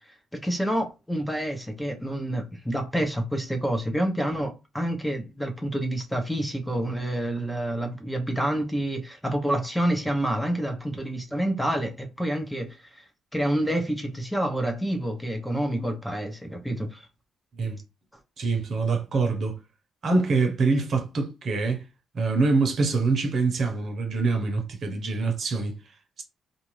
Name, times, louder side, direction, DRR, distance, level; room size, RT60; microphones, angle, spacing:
voice 1, 0.3-13.0 13.3-17.1, right 1 dB, 5° left, 0.8 m, -28 dB
voice 2, 18.4-19.6 20.0-21.8 22.1-25.8, right 3 dB, 55° right, 0.8 m, -25 dB
2.5 x 2.4 x 3.1 m
cardioid pair, 90°, 0 cm